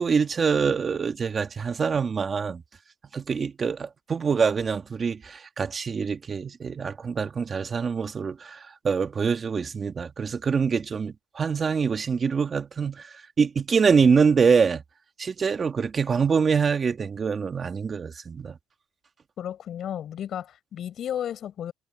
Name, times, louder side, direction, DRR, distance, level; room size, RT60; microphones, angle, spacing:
voice 1, 0.0-2.6 3.1-14.8 15.2-18.6, right 6 dB, 35° right, 2.3 m, -25 dB
voice 2, 19.4-21.7, left 10 dB, 55° left, 5.9 m, -33 dB
cardioid pair, 105°, 0 cm